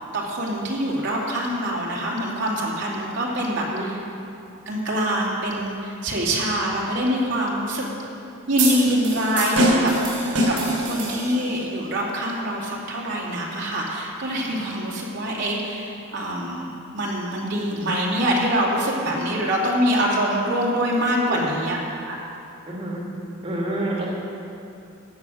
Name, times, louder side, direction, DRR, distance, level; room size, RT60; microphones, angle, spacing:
voice 1, 0.1-4.0 4.7-7.8 8.5-9.9 10.5-21.8 22.1-22.2, equal, 55° right, -4 dB, 2.6 m, -24 dB
sound 1, 8.6-11.6, right 1 dB, 80° right, 4.1 m, -23 dB
voice 2, 21.2-21.5 22.7-23.0 23.4-24.1, right 1 dB, 25° right, -4 dB, 2.5 m, -28 dB
15.5 x 9.9 x 6.4 m, 2.7 s
head